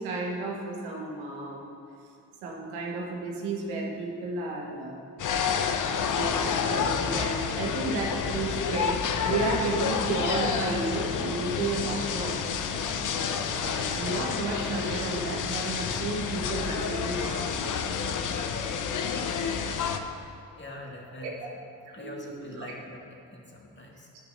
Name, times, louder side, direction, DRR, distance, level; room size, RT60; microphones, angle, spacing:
voice 1, 0.0-1.7 2.4-5.0 6.1-12.6 13.5-17.8 21.2-21.3 22.0-22.7, right 3 dB, 85° right, -1 dB, 1.4 m, -33 dB
sound 1, 5.2-20.0, left 6 dB, 50° left, 0.8 m, -29 dB
voice 2, 20.1-21.6 21.9-24.1, left 1 dB, 30° left, -1 dB, 2.1 m, -44 dB
11.0 x 9.9 x 2.6 m, 2.4 s
hypercardioid pair, 45°, 39 cm